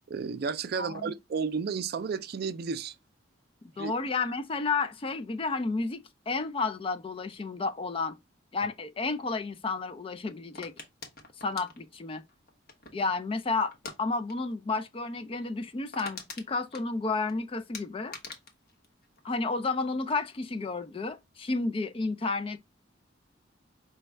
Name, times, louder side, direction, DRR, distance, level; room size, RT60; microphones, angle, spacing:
voice 1, 0.1-3.0 3.8-3.9, right 5 dB, 55° right, 0.4 m, -32 dB
voice 2, 0.8-1.1 3.8-8.2 8.5-10.7 11.4-12.2 12.9-18.1 19.2-22.6, left 3 dB, 30° left, 0.4 m, -31 dB
sound 1, 10.5-13.1 13.7-14.0 14.3-14.5 14.8-14.9 15.3-15.4 15.6-17.3 17.7-19.8 20.1-20.5, left 4 dB, 50° left, 1.0 m, -44 dB
5.1 x 2.3 x 3.3 m
head